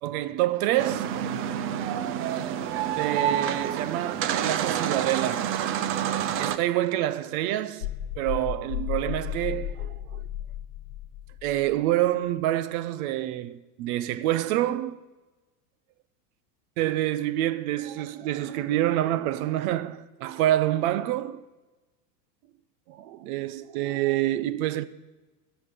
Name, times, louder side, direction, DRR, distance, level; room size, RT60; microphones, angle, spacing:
voice 1, 0.0-1.1 3.0-5.5 6.4-7.9 8.2-10.2 11.4-15.0 16.8-21.4 22.9-24.8, right 14 dB, 65° right, 0.8 m, -27 dB
sound 1, 0.8-6.6, right 9 dB, 30° right, 0.4 m, -28 dB
sound 2, 7.8-11.8, left 12 dB, 80° left, 1.3 m, -34 dB
16.0 x 5.9 x 8.3 m
supercardioid pair, 140°, 47 cm